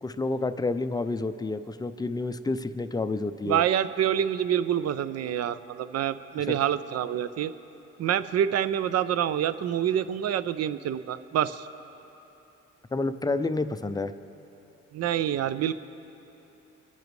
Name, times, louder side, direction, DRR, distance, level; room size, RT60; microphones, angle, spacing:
voice 1, 0.0-3.6 6.4-6.5 12.9-14.1, left 3 dB, 15° left, 11 dB, 0.4 m, -29 dB
voice 2, 3.4-7.5 8.0-11.7 14.9-15.7, right 10 dB, 55° right, 14 dB, 0.5 m, -27 dB
22.0 x 10.0 x 3.2 m, 3.0 s
cardioid pair, 90°, 30 cm